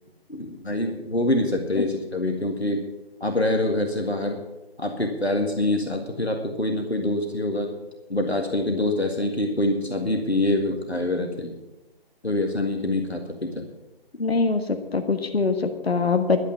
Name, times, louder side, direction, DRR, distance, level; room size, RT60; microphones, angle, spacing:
voice 1, 0.3-2.9 3.2-4.4 4.8-7.7 8.1-11.6 12.2-13.7, left 1 dB, 90° left, 3 dB, 1.9 m, -25 dB
voice 2, 14.2-16.4, left 4 dB, 75° left, 7 dB, 1.4 m, -23 dB
12.0 x 8.0 x 8.3 m, 1.0 s
figure-of-eight pair, 150°, 31 cm